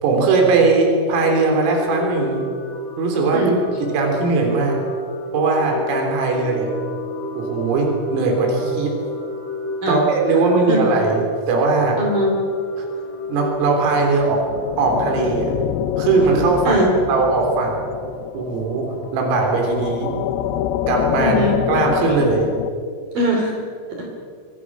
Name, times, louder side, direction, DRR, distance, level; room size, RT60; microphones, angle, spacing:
voice 1, 0.0-2.4 3.0-3.4 3.8-4.8 5.3-6.7 7.3-9.0 9.9-12.0 12.8-12.9 13.3-14.4 14.8-15.5 16.0-16.8 17.1-17.8 18.3-18.9 19.1-20.1 20.9-21.4 21.7-22.5, right 3 dB, 90° right, 1 dB, 6.1 m, -19 dB
sound 1, 1.1-13.5, left 1 dB, 40° left, 4.6 m, -30 dB
voice 2, 12.0-12.3 16.6-16.9 21.2-21.5 23.1-23.6 24.0-24.1, right 1 dB, 50° right, 0 dB, 4.2 m, -20 dB
sound 2, 13.8-22.7, left 11 dB, 90° left, 3.5 m, -26 dB
27.0 x 23.5 x 6.2 m, 2.3 s
omnidirectional pair, 5.8 m